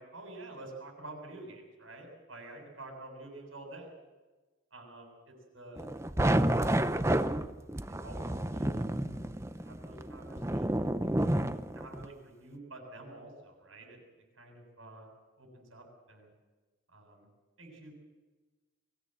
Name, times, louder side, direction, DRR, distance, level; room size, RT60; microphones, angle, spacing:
voice 1, 0.0-3.9 4.7-5.9 7.9-9.3 9.6-11.4 11.7-14.0 14.4-15.1 15.4-16.3 16.9-17.3 17.6-17.9, right 2 dB, 85° right, 2 dB, 7.6 m, -49 dB
sound 1, 5.8-12.1, right 1 dB, 15° right, 0.6 m, -30 dB
23.0 x 16.5 x 7.9 m, 1.2 s
head